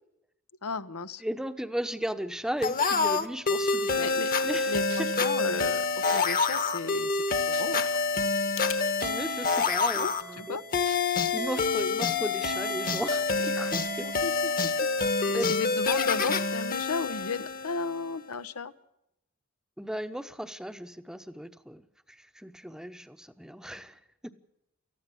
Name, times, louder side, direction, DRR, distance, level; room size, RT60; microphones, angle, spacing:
voice 1, 0.6-1.2 4.0-7.8 9.9-10.6 14.0-14.5 14.8-18.7, left 4 dB, 90° left, 12 dB, 1.0 m, -35 dB
voice 2, 1.2-5.1 9.0-10.6 11.1-14.0 14.8-14.9 15.3-15.5 19.8-24.3, equal, 5° right, 10 dB, 0.9 m, -36 dB
sound 1, 2.6-18.1, left 4 dB, 40° left, 1.3 m, -27 dB
sound 2, 4.9-5.2 6.1-6.2 6.9-7.0 7.5-7.9 9.0-9.1 10.9-11.0 11.5-11.6 13.1-13.2 14.0-14.1, right 11 dB, 85° right, 2.8 m, -44 dB
sound 3, 8.5-8.9, left 11 dB, 60° left, 2.6 m, -46 dB
19.5 x 14.5 x 10.0 m, 0.84 s
head